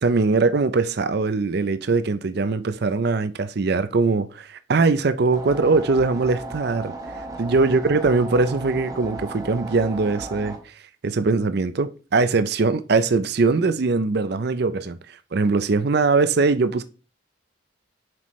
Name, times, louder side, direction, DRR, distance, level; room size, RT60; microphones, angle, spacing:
voice 1, 0.0-6.9 7.4-10.7 11.0-16.8, right 3 dB, 55° right, 0.5 m, -21 dB
sound 1, 5.3-10.6, right 2 dB, 20° right, 1.2 m, -35 dB
7.6 x 5.8 x 3.1 m
head